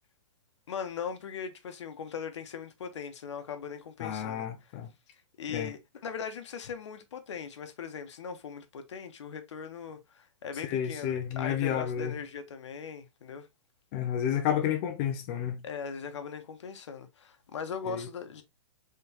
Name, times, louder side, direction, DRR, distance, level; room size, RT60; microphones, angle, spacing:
voice 1, 0.7-4.7 5.4-13.5 15.6-18.4, left 6 dB, 70° left, 1.0 m, -40 dB
voice 2, 4.0-4.9 5.5-5.7 10.6-12.2 13.9-15.6 17.9-18.1, left 9 dB, 25° left, 0.4 m, -31 dB
3.7 x 3.3 x 2.8 m
hypercardioid pair, 170°, 15 cm